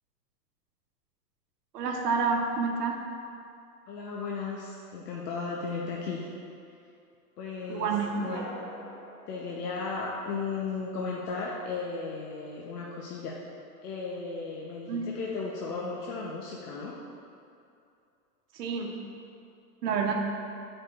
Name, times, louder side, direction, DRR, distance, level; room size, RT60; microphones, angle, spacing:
voice 1, 1.7-3.0 7.7-8.4 14.9-15.1 18.5-18.9 19.8-20.1, right 5 dB, 90° right, 0 dB, 1.0 m, -29 dB
voice 2, 3.9-6.3 7.4-8.4 9.3-13.5 13.8-16.9, left 4 dB, 75° left, -4 dB, 1.0 m, -35 dB
sound 1, 7.5-10.6, equal, 5° left, 0.4 m, -47 dB
8.7 x 5.0 x 2.5 m, 2.6 s
supercardioid pair, 170°, 47 cm